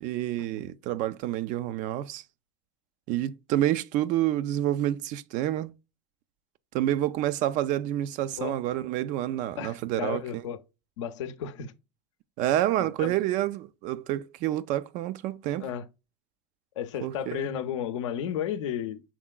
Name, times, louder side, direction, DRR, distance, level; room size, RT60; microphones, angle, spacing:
voice 1, 0.0-2.2 3.1-5.7 6.7-10.4 12.4-15.7 17.0-17.5, right 13 dB, 55° right, 0.4 m, -28 dB
voice 2, 9.6-10.6 11.0-11.7 12.8-13.2 15.6-15.8 16.8-19.0, left 9 dB, 80° left, 0.6 m, -33 dB
6.0 x 3.6 x 2.2 m
hypercardioid pair, 90°, 15 cm